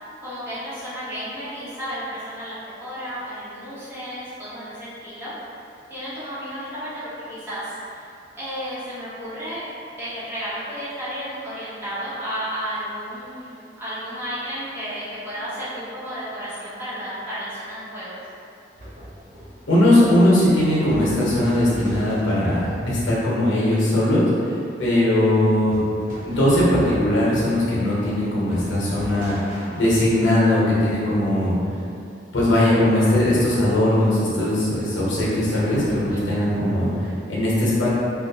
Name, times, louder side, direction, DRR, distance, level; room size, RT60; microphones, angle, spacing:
voice 1, 0.2-5.3 5.9-8.0 8.3-9.6 10.0-18.2 36.1-36.4, equal, 10° right, -13 dB, 0.8 m, -32 dB
sound 1, 18.8-22.7 25.7-31.4 35.1-37.3, equal, 45° right, 0.6 m, -38 dB
voice 2, 19.7-24.2 24.8-25.8 26.2-29.4 29.7-31.5 32.3-37.9, left 1 dB, 80° left, -7 dB, 0.8 m, -19 dB
2.5 x 2.1 x 2.7 m, 2.5 s
head